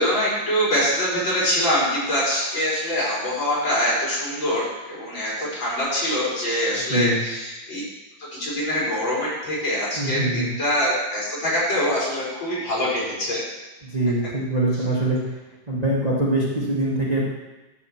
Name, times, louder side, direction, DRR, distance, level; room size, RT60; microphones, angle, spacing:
voice 1, 0.0-7.8 8.2-13.4, equal, 70° left, -7 dB, 4.9 m, -24 dB
voice 2, 6.9-7.2 10.0-10.5 13.8-15.2 15.7-17.3, right 1 dB, 20° right, -6 dB, 1.6 m, -23 dB
12.0 x 4.2 x 7.1 m, 1.1 s
omnidirectional pair, 2.1 m